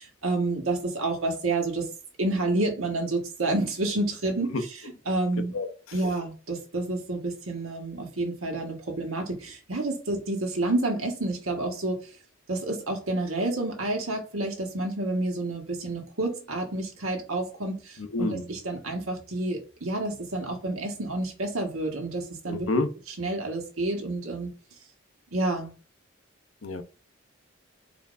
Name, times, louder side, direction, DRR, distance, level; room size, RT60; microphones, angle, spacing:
voice 1, 0.0-1.9 2.2-4.6 5.1-5.5 5.9-12.0 12.5-22.7 23.2-24.5 25.3-25.7, right 2 dB, 90° right, 1.4 m, -29 dB
voice 2, 18.0-18.5 22.5-22.9 26.6-26.8, left 2 dB, 80° left, 0.7 m, -28 dB
4.4 x 3.5 x 2.6 m
head